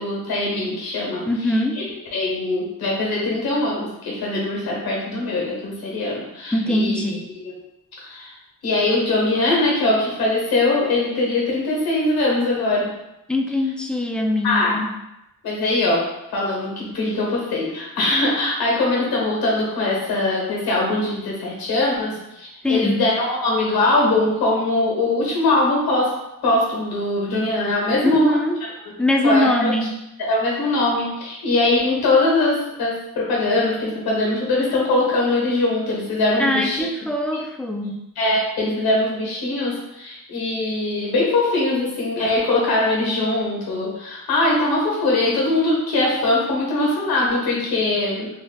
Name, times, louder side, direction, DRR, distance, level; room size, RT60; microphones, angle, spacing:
voice 1, 0.0-7.0 7.4-7.5 8.0-8.3 8.6-12.9 14.4-14.8 15.4-26.1 26.4-28.4 29.2-29.7 30.2-36.9 38.2-48.3, left 2 dB, 85° left, -3 dB, 1.4 m, -21 dB
voice 2, 1.3-1.8 6.5-7.3 13.3-14.9 22.6-23.0 28.0-28.7 29.0-29.9 36.4-38.0, left 1 dB, 5° left, 1 dB, 0.4 m, -22 dB
4.0 x 2.9 x 2.3 m, 0.89 s
cardioid pair, 90°, 36 cm